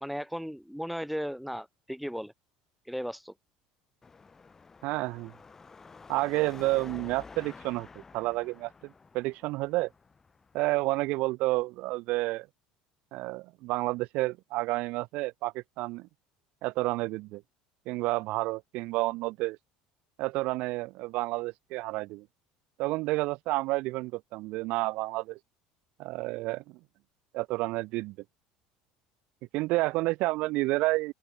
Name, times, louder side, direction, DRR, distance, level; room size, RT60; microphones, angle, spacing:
voice 1, 0.0-2.3 2.9-3.3, equal, ahead, 1.9 m, -36 dB
Car passing by / Traffic noise roadway noise / Engine, 4.0-11.3, left 4 dB, 15° left, 3.0 m, -50 dB
voice 2, 4.8-5.3 6.1-9.9 10.5-12.5 13.1-16.1 16.6-17.4 17.9-19.6 20.2-22.3 22.8-25.4 26.0-26.8 27.3-28.2 29.5-31.1, right 21 dB, 65° right, 1.1 m, -30 dB
open air
cardioid pair, 140°, 2 cm